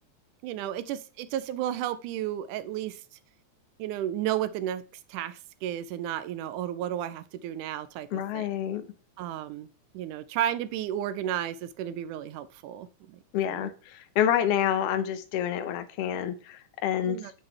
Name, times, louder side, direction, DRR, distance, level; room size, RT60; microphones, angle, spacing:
voice 1, 0.4-3.0 3.8-4.8 5.1-8.5 9.2-9.7 9.9-13.2 13.5-13.7 17.0-17.3, right 11 dB, 90° right, 13 dB, 2.1 m, -33 dB
voice 2, 8.1-8.9 13.3-17.2, left 10 dB, 70° left, 9 dB, 1.5 m, -28 dB
7.9 x 7.7 x 3.4 m, 0.37 s
omnidirectional pair, 3.5 m